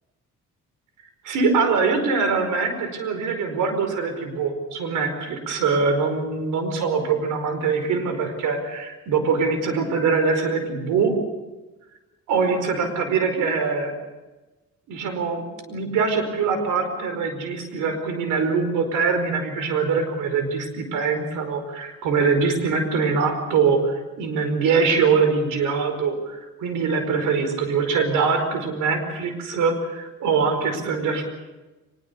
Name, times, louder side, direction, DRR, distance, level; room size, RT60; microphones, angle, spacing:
voice 1, 1.2-11.1 12.3-13.9 14.9-15.4 15.7-31.2, right 5 dB, 90° right, 7 dB, 4.9 m, -23 dB
24.0 x 21.5 x 7.1 m, 1.1 s
cardioid pair, 90°, 30 cm